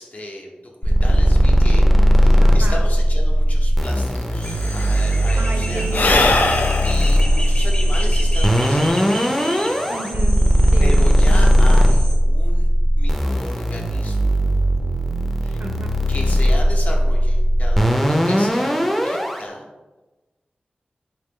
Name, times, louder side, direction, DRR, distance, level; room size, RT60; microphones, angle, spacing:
voice 1, 0.0-1.8 2.1-6.0 6.8-9.5 10.8-12.7 13.0-14.5 15.4-15.6 16.1-19.7, left 1 dB, 55° left, -1 dB, 0.8 m, -34 dB
sound 1, 0.8-19.4, equal, 5° left, 0.5 m, -17 dB
voice 2, 2.4-2.8 5.4-6.3 9.9-10.4 10.7-10.9 15.6-15.9, right 2 dB, 60° right, 4 dB, 0.5 m, -32 dB
Sigh / Breathing, 3.9-4.0 4.2-8.9, left 2 dB, 70° left, 0.4 m, -22 dB
sound 2, 4.4-12.2, equal, 35° left, 1.0 m, -32 dB
4.2 x 2.8 x 3.7 m, 1.2 s
wide cardioid pair, 90°, 3 cm